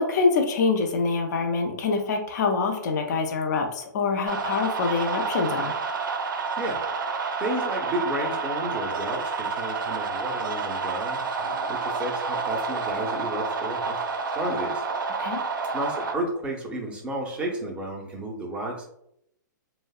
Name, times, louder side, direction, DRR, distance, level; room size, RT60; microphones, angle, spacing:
voice 1, 0.0-5.7 15.2-15.4, left 4 dB, 55° left, 3 dB, 0.5 m, -25 dB
sound 1, 4.3-16.1, right 4 dB, 80° right, 0.4 m, -29 dB
voice 2, 6.6-7.1 7.4-14.0 14.3-14.8 15.7-18.9, right 1 dB, 10° right, -1 dB, 0.5 m, -32 dB
2.6 x 2.0 x 2.3 m, 0.76 s
hypercardioid pair, 135°, 11 cm